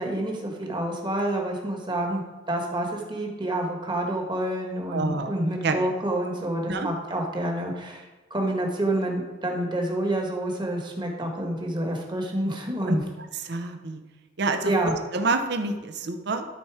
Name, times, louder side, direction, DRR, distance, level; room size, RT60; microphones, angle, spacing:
voice 1, 0.0-2.2 2.5-8.0 8.3-13.0 14.6-14.9, right 1 dB, 25° right, 1 dB, 1.4 m, -28 dB
voice 2, 4.9-5.3 5.6-5.9 6.7-6.9 12.9-13.0 13.4-14.0 14.4-14.7 15.1-16.5, right 3 dB, 60° right, 7 dB, 0.7 m, -27 dB
12.5 x 4.3 x 4.8 m, 1.2 s
head